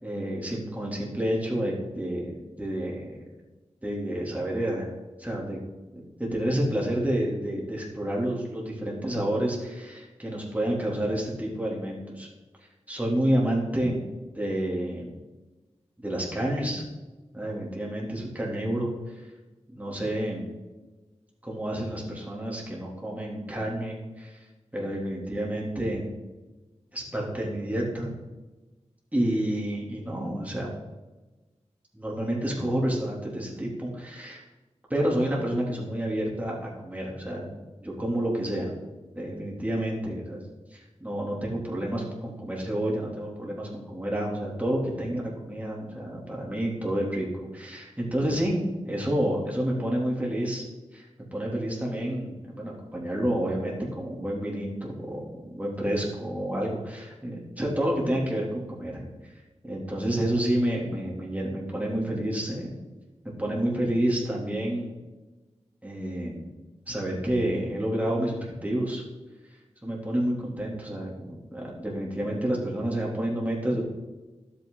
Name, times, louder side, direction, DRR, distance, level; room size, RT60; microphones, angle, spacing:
voice 1, 0.0-3.1 3.8-4.9 5.2-5.6 6.2-12.3 12.9-14.0 14.3-15.2 16.0-16.8 17.3-19.1 19.7-20.5 21.4-24.4 24.7-26.1 26.9-28.1 29.1-30.8 31.9-34.4 34.9-37.5 37.8-38.7 39.1-40.4 40.7-47.3 47.5-50.6 50.9-59.0 59.6-62.7 63.4-64.9 65.8-66.5 66.9-69.0 69.8-73.8, right 1 dB, 15° right, -3 dB, 3.1 m, -29 dB
12.0 x 8.6 x 4.0 m, 1.2 s
wide cardioid pair, 90°, 12 cm